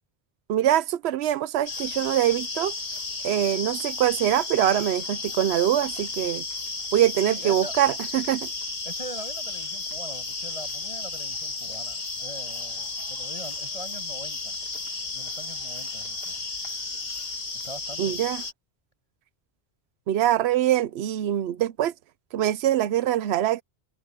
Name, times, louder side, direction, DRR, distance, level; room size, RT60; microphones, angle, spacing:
voice 1, 0.5-2.7 3.2-6.4 6.9-8.5 18.0-18.4 20.1-21.9 22.3-23.6, right 11 dB, 85° right, 0.9 m, -23 dB
sound 1, 1.7-18.5, left 3 dB, 70° left, 2.4 m, -33 dB
voice 2, 7.3-7.7 8.8-14.6 15.0-16.3 17.6-18.3, right 1 dB, 35° right, 7.9 m, -42 dB
omnidirectional pair, 1.1 m